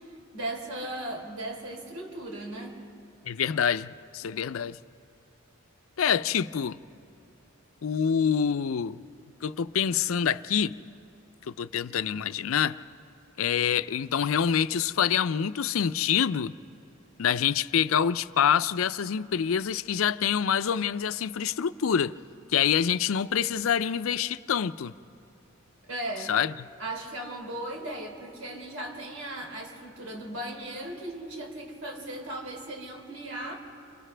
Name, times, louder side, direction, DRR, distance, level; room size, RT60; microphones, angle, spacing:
voice 1, 0.0-2.8 25.9-26.4 26.8-33.6, right 1 dB, 90° right, 1 dB, 3.5 m, -37 dB
voice 2, 3.3-4.8 6.0-6.8 7.8-9.0 9.4-10.8 11.5-12.8 13.4-16.5 17.2-22.1 22.5-24.9 26.3-26.5, left 8 dB, 75° left, 14 dB, 0.5 m, -26 dB
29.5 x 27.5 x 3.4 m, 2.6 s
head